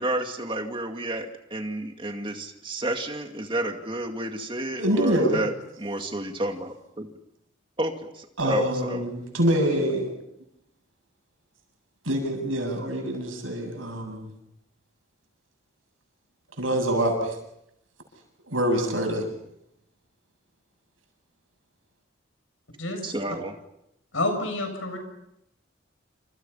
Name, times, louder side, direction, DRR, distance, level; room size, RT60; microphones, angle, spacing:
voice 1, 0.0-5.5 5.8-7.1 7.8-7.9 8.4-9.0 23.0-23.5, right 1 dB, 25° right, 5 dB, 2.2 m, -31 dB
voice 2, 4.7-5.4 8.4-10.1 12.0-14.3 16.6-17.4 18.5-19.3, right 1 dB, 85° right, 3 dB, 7.9 m, -25 dB
voice 3, 22.8-23.4 24.1-25.0, left 2 dB, 80° left, 5 dB, 7.3 m, -29 dB
28.5 x 27.5 x 5.7 m, 0.81 s
head